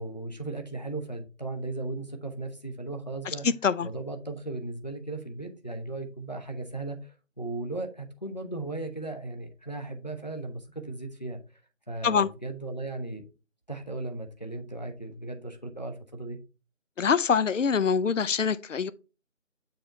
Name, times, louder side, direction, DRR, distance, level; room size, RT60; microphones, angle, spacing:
voice 1, 0.0-3.5 3.8-11.4 11.9-13.2 13.7-16.4, right 2 dB, 35° left, 0.7 m, -36 dB
voice 2, 17.0-18.9, left 6 dB, 70° left, 0.6 m, -24 dB
6.7 x 3.9 x 4.3 m
figure-of-eight pair, 175°, 39 cm